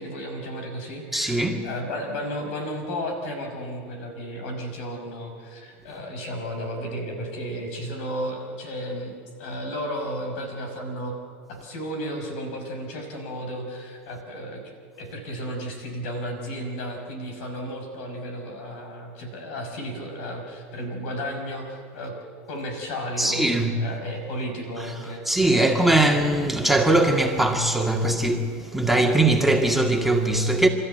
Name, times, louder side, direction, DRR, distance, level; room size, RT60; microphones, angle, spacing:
voice 1, 0.0-11.1 11.5-14.6 15.0-22.1 22.5-26.3, equal, 75° left, 5.7 m, -33 dB
voice 2, 1.1-1.7 23.2-23.8 25.3-30.7, right 2 dB, ahead, 2.2 m, -21 dB
28.5 x 13.5 x 9.3 m
hypercardioid pair, 95°, 7 cm